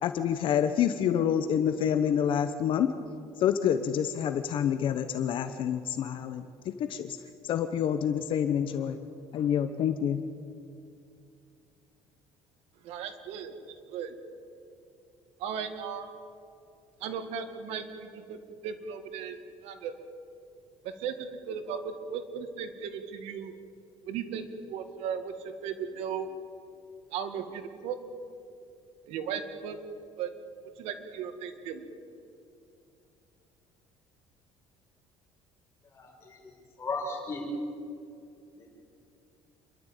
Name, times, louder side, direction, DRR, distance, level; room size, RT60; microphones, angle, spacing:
voice 1, 0.0-2.9 3.4-7.2 7.4-9.0 9.3-10.2, left 9 dB, 55° left, 9 dB, 1.0 m, -27 dB
voice 2, 12.8-13.5 13.9-14.1 15.4-16.1 17.0-18.4 18.6-19.4 19.6-19.9 21.0-23.5 24.1-24.4 24.7-25.3 25.6-26.3 27.1-28.0 29.1-29.8 30.2-30.3 30.8-31.9, right 7 dB, 75° right, 8 dB, 2.1 m, -36 dB
voice 3, 35.9-36.5 36.8-37.4 38.5-38.7, left 3 dB, 25° left, -1 dB, 6.2 m, -36 dB
28.0 x 12.5 x 9.0 m, 2.5 s
cardioid pair, 145°, 10 cm